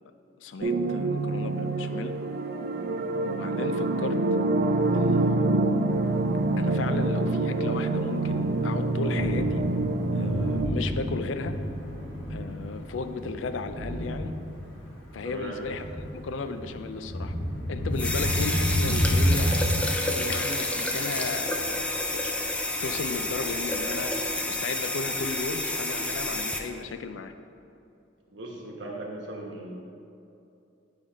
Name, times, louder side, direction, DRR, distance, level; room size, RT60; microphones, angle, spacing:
voice 1, 0.4-2.1 3.2-4.2 4.9-5.7 6.6-9.6 10.1-11.6 12.3-14.4 15.1-17.3 17.7-19.7 20.2-22.2 22.8-27.3, left 4 dB, 90° left, 9 dB, 0.4 m, -35 dB
sound 1, 0.6-10.7, right 2 dB, 55° right, 0.4 m, -26 dB
Thunder, 6.1-19.8, equal, 75° left, 1.6 m, -30 dB
voice 2, 15.2-15.6 28.3-29.7, right 2 dB, 70° right, -1 dB, 1.1 m, -38 dB
sound 2, 17.9-26.6, left 1 dB, 5° left, 0.4 m, -29 dB
8.5 x 3.4 x 5.1 m, 2.7 s
head